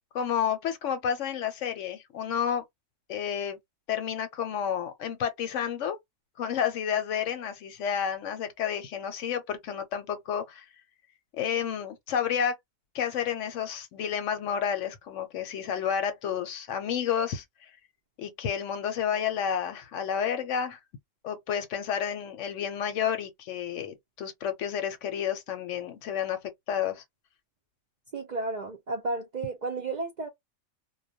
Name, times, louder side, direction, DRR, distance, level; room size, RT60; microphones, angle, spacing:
voice 1, 0.1-2.6 3.1-3.6 3.9-6.0 6.4-10.7 11.4-12.6 12.9-17.7 18.2-20.8 21.2-26.4 26.7-27.0, left 8 dB, 70° left, 0.9 m, -30 dB
voice 2, 28.1-30.3, right 3 dB, 70° right, 0.4 m, -32 dB
2.3 x 2.1 x 2.6 m
omnidirectional pair, 1.4 m